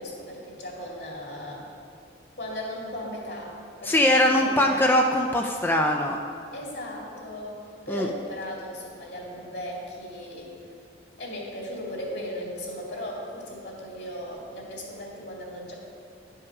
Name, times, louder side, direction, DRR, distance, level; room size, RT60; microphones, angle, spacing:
voice 1, 0.0-1.7 2.3-4.9 6.5-10.7 11.2-15.7, equal, 65° left, -3 dB, 2.3 m, -37 dB
voice 2, 3.8-6.2 7.9-8.1, left 1 dB, 10° left, 1 dB, 0.4 m, -21 dB
11.0 x 5.6 x 5.8 m, 2.6 s
head